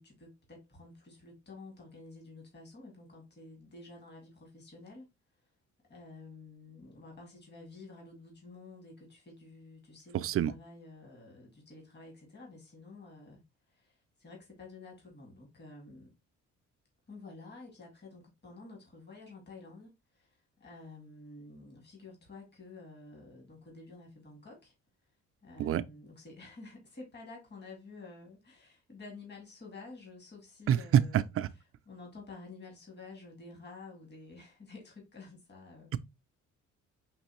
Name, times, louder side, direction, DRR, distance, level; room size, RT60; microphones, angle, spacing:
voice 1, 0.0-5.1 5.9-16.1 17.1-24.7 25.4-31.2 31.9-35.9, left 3 dB, 35° left, 2.2 m, -51 dB
voice 2, 10.1-10.5 25.6-25.8 30.7-31.5, right 10 dB, 50° right, 0.4 m, -27 dB
5.3 x 3.0 x 3.0 m
cardioid pair, 90°, 30 cm